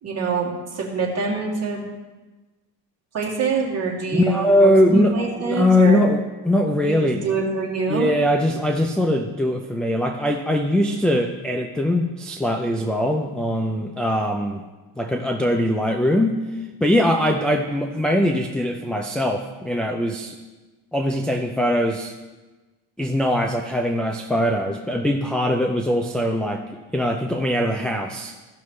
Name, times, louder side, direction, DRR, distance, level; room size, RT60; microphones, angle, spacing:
voice 1, 0.0-1.8 3.1-6.0 6.8-8.1, right 4 dB, 35° right, -4 dB, 2.5 m, -25 dB
voice 2, 4.1-7.2 7.9-14.6 15.0-16.4 16.8-20.4 20.9-22.1 23.0-28.3, left 1 dB, ahead, 1 dB, 0.3 m, -21 dB
15.5 x 6.0 x 3.2 m, 1.2 s
cardioid pair, 140°, 42 cm